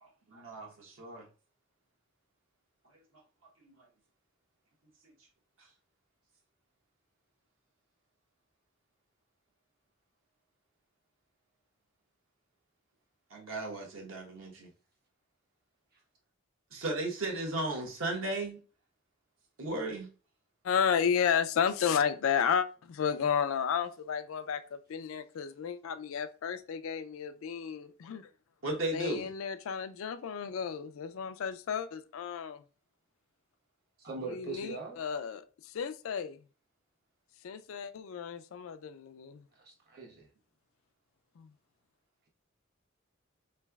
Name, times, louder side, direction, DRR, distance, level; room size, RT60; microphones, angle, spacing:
voice 1, 0.0-1.2 3.6-3.7 13.3-14.7 16.7-18.6 19.6-20.1 28.6-29.3, right 2 dB, 70° right, 1.1 m, -35 dB
voice 2, 20.6-28.3 28.9-32.6 34.3-36.4 37.4-39.4 41.4-41.5, left 7 dB, 75° left, 0.4 m, -32 dB
voice 3, 34.0-35.0 39.6-40.3, right 4 dB, 50° right, 1.1 m, -41 dB
3.8 x 3.1 x 2.3 m
head